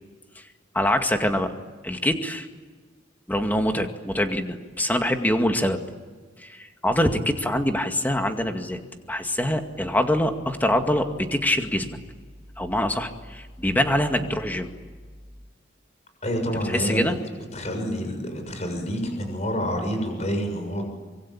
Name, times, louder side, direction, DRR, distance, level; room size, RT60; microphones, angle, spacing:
voice 1, 0.7-1.5 1.8-2.5 3.3-5.8 6.4-8.8 9.1-11.9 12.6-14.7 16.7-17.2, left 1 dB, 10° left, 5 dB, 2.1 m, -24 dB
voice 2, 16.2-20.9, equal, 35° left, 5 dB, 6.8 m, -28 dB
25.5 x 23.0 x 8.8 m, 1.4 s
head